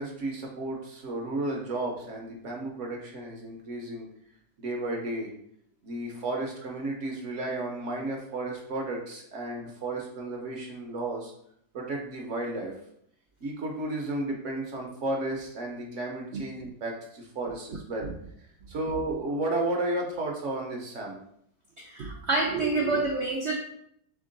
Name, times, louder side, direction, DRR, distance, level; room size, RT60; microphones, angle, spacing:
voice 1, 0.0-4.1 4.6-5.3 5.8-11.3 11.7-12.7 13.4-18.1 18.7-21.2, right 2 dB, 55° right, 0 dB, 0.9 m, -33 dB
voice 2, 21.8-23.6, right 3 dB, 80° right, -1 dB, 0.6 m, -27 dB
3.6 x 3.6 x 3.8 m, 0.70 s
omnidirectional pair, 1.9 m